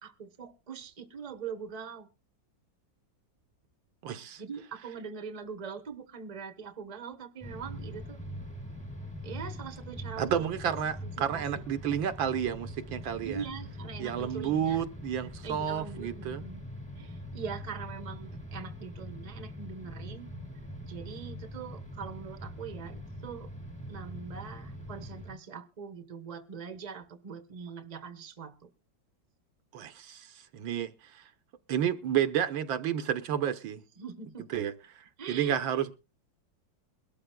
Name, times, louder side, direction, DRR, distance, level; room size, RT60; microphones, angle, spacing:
voice 1, 0.0-2.1 4.4-8.2 9.2-10.3 10.6-10.8 11.0-11.6 13.2-14.8 15.4-16.7 16.9-20.3 20.9-23.5 23.9-28.6 34.0-34.6 35.2-35.6, right 6 dB, 25° right, 1.0 m, -42 dB
voice 2, 4.0-4.4 10.2-13.4 14.0-16.4 29.7-30.3 30.5-31.2 31.7-33.8 34.5-34.7 35.3-35.9, right 9 dB, 85° right, 1.7 m, -31 dB
sound 1, 7.4-25.4, equal, 5° left, 1.5 m, -43 dB
22.5 x 12.5 x 2.3 m
omnidirectional pair, 2.0 m